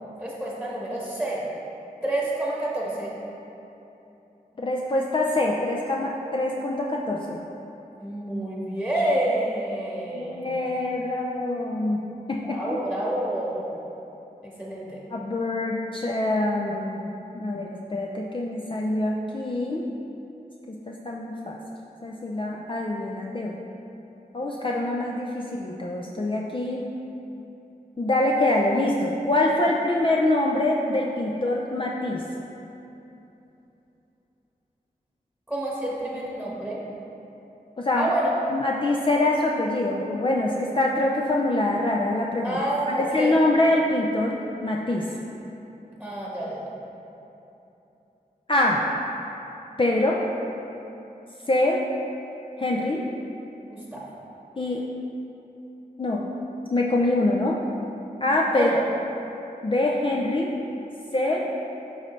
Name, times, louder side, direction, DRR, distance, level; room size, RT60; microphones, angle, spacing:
voice 1, 0.2-1.5 2.0-3.1 8.0-10.5 12.4-13.8 14.4-15.0 35.5-36.8 37.9-38.3 42.4-43.4 46.0-46.7 53.7-54.0 58.5-58.8, right 1 dB, ahead, -6 dB, 1.3 m, -28 dB
voice 2, 4.6-7.4 10.1-12.0 12.3-12.8 15.1-19.9 20.7-21.6 22.0-23.6 24.3-26.9 28.0-32.2 37.8-38.1 38.5-42.6 42.9-45.1 48.5-48.8 49.8-50.2 51.5-51.8 52.6-53.1 54.6-54.8 56.0-56.2 56.7-57.6 58.2-58.7 59.6-60.5 61.1-61.5, left 2 dB, 35° left, -2 dB, 0.5 m, -25 dB
11.5 x 4.1 x 3.2 m, 3.0 s
wide cardioid pair, 70°, 16 cm